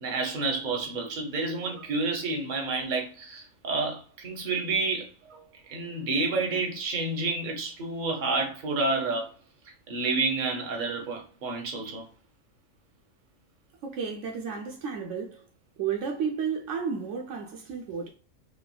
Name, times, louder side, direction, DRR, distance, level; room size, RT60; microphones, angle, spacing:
voice 1, 0.0-9.3 9.9-12.0, right 3 dB, 45° right, 0.8 m, -29 dB
voice 2, 13.8-15.4 15.8-18.1, right 6 dB, 75° right, 0.9 m, -32 dB
3.2 x 2.1 x 2.2 m
omnidirectional pair, 1.3 m